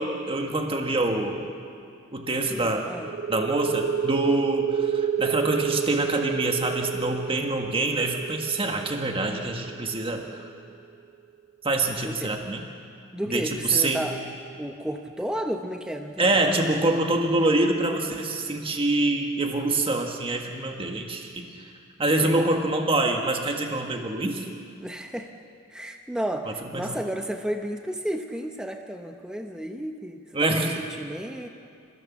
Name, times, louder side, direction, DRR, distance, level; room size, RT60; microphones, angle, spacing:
voice 1, 0.0-1.5 2.1-2.8 3.3-10.4 11.6-12.6 13.3-14.0 16.2-21.4 22.0-24.4 26.7-26.8 30.3-30.8, right 2 dB, 30° right, 3 dB, 1.6 m, -25 dB
voice 2, 2.5-3.1 12.0-12.4 13.1-14.2 14.6-16.4 22.2-22.3 24.8-25.3 25.7-31.5, equal, 5° right, 4 dB, 0.9 m, -32 dB
sound 1, 3.0-10.4, right 8 dB, 85° right, 1.1 m, -28 dB
29.0 x 15.5 x 7.1 m, 2.4 s
head